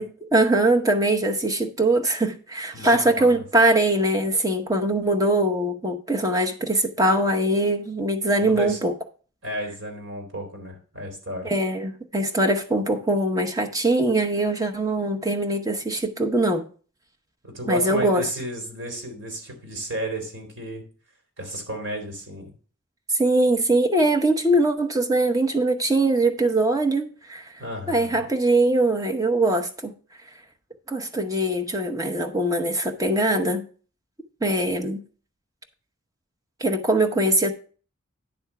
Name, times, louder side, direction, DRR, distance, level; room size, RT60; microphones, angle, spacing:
voice 1, 0.0-8.9 11.4-16.7 17.7-18.3 23.1-27.5 27.9-29.9 30.9-33.6 34.4-35.0 36.6-37.5, right 1 dB, 15° right, 0.8 m, -22 dB
voice 2, 2.7-3.4 8.4-8.8 9.4-11.5 17.4-20.8 21.4-22.5 27.6-28.2, right 1 dB, 70° right, 2.9 m, -32 dB
10.5 x 3.5 x 6.7 m
head